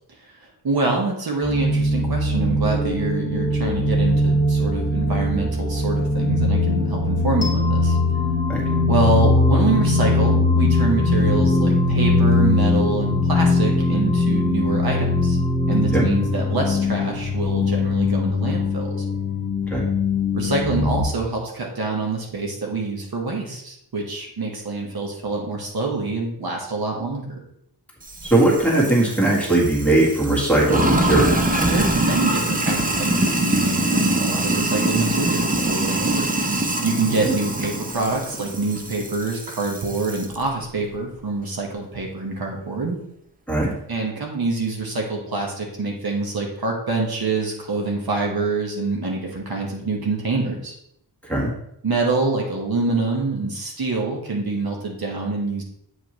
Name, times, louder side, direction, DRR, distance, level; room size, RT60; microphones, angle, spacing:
voice 1, 0.2-8.0 8.9-15.4 15.7-18.9 20.3-27.4 31.7-43.0 43.9-50.7 51.8-55.6, right 3 dB, 60° right, 0 dB, 1.3 m, -26 dB
sound 1, 1.4-21.0, left 3 dB, 35° left, 1.5 m, -21 dB
sound 2, 7.4-18.3, right 1 dB, 20° left, 1.1 m, -26 dB
Sink (filling or washing), 28.1-40.4, right 1 dB, 20° right, 0.6 m, -24 dB
voice 2, 28.2-31.4 37.2-37.3 43.5-43.7 51.3-51.5, right 2 dB, 5° left, -5 dB, 1.8 m, -19 dB
8.0 x 5.1 x 3.1 m, 0.75 s
wide cardioid pair, 150°, 41 cm